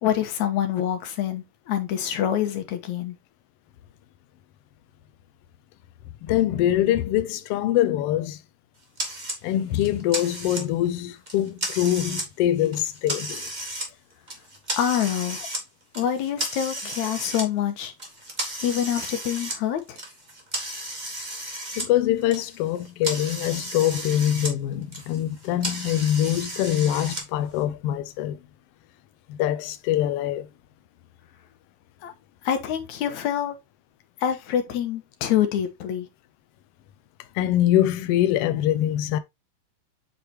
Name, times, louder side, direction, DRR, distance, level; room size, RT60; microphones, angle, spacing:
voice 1, 0.0-3.2 14.8-15.4 16.0-17.9 18.6-20.0 32.0-32.1 32.4-33.6 34.2-36.1, left 10 dB, 70° left, 2.5 m, -26 dB
voice 2, 6.2-8.4 9.4-13.4 21.8-28.4 29.3-30.5 37.3-39.2, left 12 dB, 90° left, 1.3 m, -24 dB
sound 1, 9.0-9.4 9.8-10.9 11.3-12.3 12.6-13.9 14.3-15.6 15.9-17.4 18.0-21.9 22.2-24.5 24.8-27.2, right 1 dB, 25° right, 1.0 m, -33 dB
8.4 x 4.9 x 2.9 m
omnidirectional pair, 3.5 m